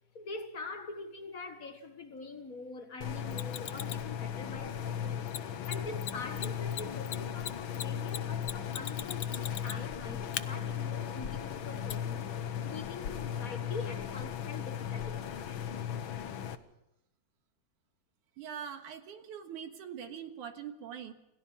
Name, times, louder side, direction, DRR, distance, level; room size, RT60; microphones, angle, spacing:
voice 1, 0.1-5.3 5.7-12.4 12.6-15.8, left 3 dB, 40° left, 1.4 m, -44 dB
sound 1, 3.0-16.6, left 9 dB, 60° left, 1.4 m, -37 dB
Mechanisms, 3.3-4.1 5.3-5.4 5.6-5.7 6.0-6.1 6.4-9.9 10.3-10.4 11.9-12.0, left 11 dB, 80° left, 1.2 m, -38 dB
voice 2, 18.4-21.1, right 8 dB, 75° right, 3.0 m, -43 dB
28.5 x 17.5 x 5.6 m
omnidirectional pair, 3.7 m